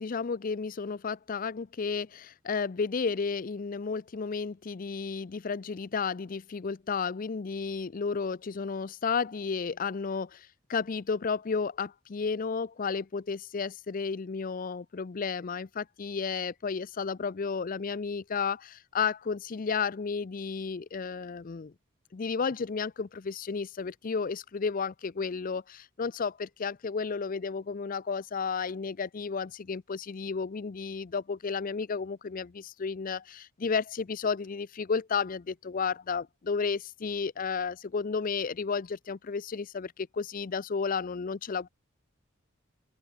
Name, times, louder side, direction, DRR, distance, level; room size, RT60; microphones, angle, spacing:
voice 1, 0.0-21.7 22.1-41.7, left 5 dB, 40° left, 0.5 m, -32 dB
open air
head